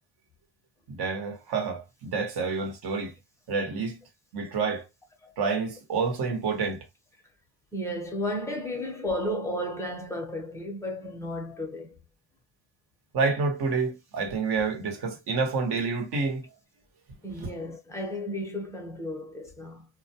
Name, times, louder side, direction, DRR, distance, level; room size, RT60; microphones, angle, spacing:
voice 1, 0.9-3.1 3.5-4.0 4.3-4.9 5.4-6.9 13.1-16.5 17.4-17.5, right 4 dB, 50° right, 1.1 m, -28 dB
voice 2, 7.7-11.9 17.2-19.9, left 1 dB, 5° left, 0.7 m, -33 dB
2.2 x 2.2 x 2.8 m
cardioid pair, 115°, 48 cm